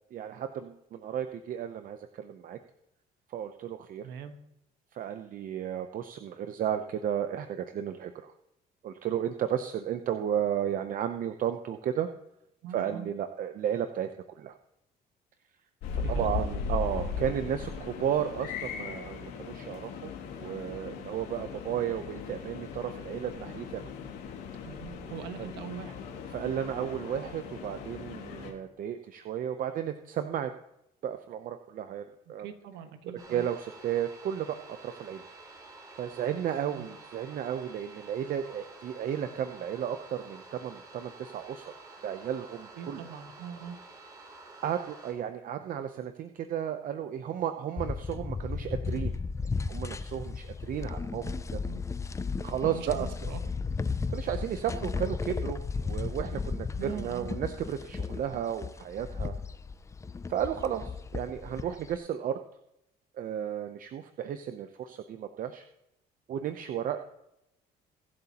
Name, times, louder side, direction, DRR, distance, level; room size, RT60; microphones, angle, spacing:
voice 1, 0.1-2.6 3.3-4.1 4.9-8.3 8.8-12.1 12.7-14.5 15.9-23.9 26.3-30.5 31.0-32.5 33.3-35.2 36.0-41.7 42.0-43.0 44.6-49.1 49.6-51.2 51.5-51.6 52.4-53.1 54.1-59.3 60.3-62.4 63.2-65.7 66.3-67.0, right 9 dB, 55° right, 8 dB, 0.7 m, -33 dB
voice 2, 4.0-4.3 12.6-13.1 16.0-16.3 24.6-26.0 32.3-33.4 36.7-36.9 42.8-43.8 51.2-51.8 52.7-53.4 56.8-57.3, right 8 dB, 90° right, 7 dB, 1.4 m, -42 dB
sound 1, 15.8-28.5, left 5 dB, 90° left, 2.2 m, -38 dB
sound 2, 33.2-45.1, right 3 dB, 20° right, 3.0 m, -50 dB
sound 3, 47.8-62.0, left 4 dB, 20° left, 0.4 m, -35 dB
22.5 x 7.9 x 2.9 m, 0.84 s
cardioid pair, 110°, 17 cm